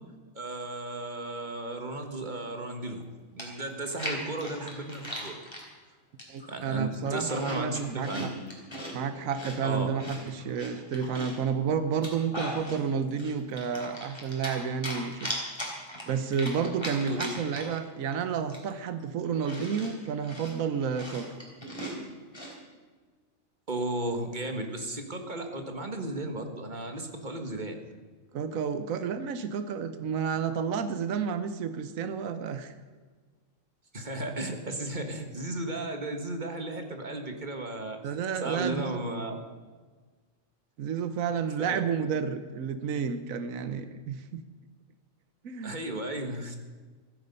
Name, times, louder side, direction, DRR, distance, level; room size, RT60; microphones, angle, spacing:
voice 1, 0.3-3.0 3.3-5.4 6.5-8.3 9.6-9.9 17.1-17.3 23.7-27.8 33.9-38.2 38.4-39.4 41.6-41.8 45.6-46.6, right 2 dB, 35° right, 5 dB, 1.8 m, -34 dB
Chewing mastication, 3.0-3.1 3.4-5.7 6.2-6.5 6.9-8.9 9.3-11.4 11.9-12.8 13.2-14.6 14.8-17.8 18.1-18.2 18.5-22.5, equal, 20° left, 3.6 m, -38 dB
voice 2, 6.3-8.3 8.9-15.3 16.1-21.3 28.3-32.7 38.0-39.0 40.8-44.4 45.4-45.8, right 6 dB, 80° right, 11 dB, 1.3 m, -31 dB
15.5 x 14.0 x 5.4 m, 1.4 s
omnidirectional pair, 1.4 m